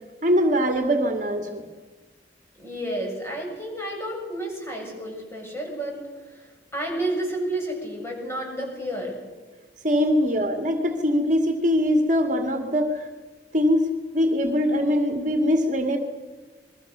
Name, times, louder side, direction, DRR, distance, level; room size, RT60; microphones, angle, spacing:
voice 1, 0.2-1.7 9.8-13.1 13.5-13.8 14.1-16.0, equal, 45° right, 5 dB, 2.1 m, -22 dB
voice 2, 2.6-6.0 6.3-9.2 10.1-10.2, right 1 dB, 15° left, 0 dB, 7.6 m, -31 dB
28.0 x 22.0 x 6.8 m, 1.3 s
head